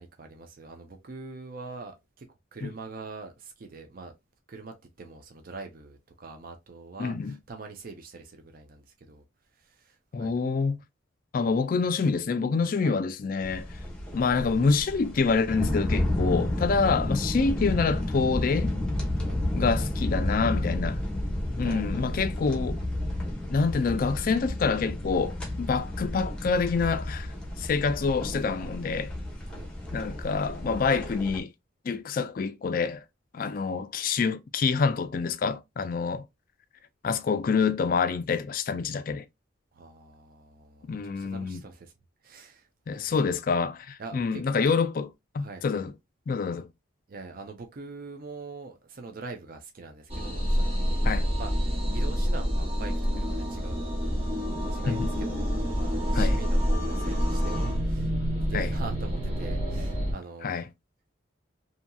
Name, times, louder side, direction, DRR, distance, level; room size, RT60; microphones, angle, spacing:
voice 1, 0.0-2.3 2.5-4.1 4.5-9.2 9.6-10.4 12.8-13.0 16.7-16.8 19.2-19.4 21.6-22.4 29.5-29.7 39.7-41.9 42.2-43.1 44.0-44.7 45.4-45.6 47.1-51.0 51.3-53.8 54.7-60.6, right 3 dB, 45° right, 0.5 m, -43 dB
voice 2, 7.0-7.4 10.1-10.8 11.3-13.6 14.1-18.8 19.5-21.0 21.6-22.8 23.5-27.3 27.6-29.1 29.9-31.5 31.9-33.0 33.3-36.2 37.0-39.2 40.9-41.6 42.9-45.1 45.3-45.9 46.3-46.7 51.0-51.3 54.9-55.1 56.1-56.4 58.5-58.7 60.4-60.6, left 5 dB, 45° left, 0.3 m, -27 dB
sound 1, 13.4-31.4, left 1 dB, 5° left, 0.8 m, -31 dB
sound 2, 50.1-60.1, equal, 30° right, 0.9 m, -27 dB
2.7 x 2.6 x 2.2 m
head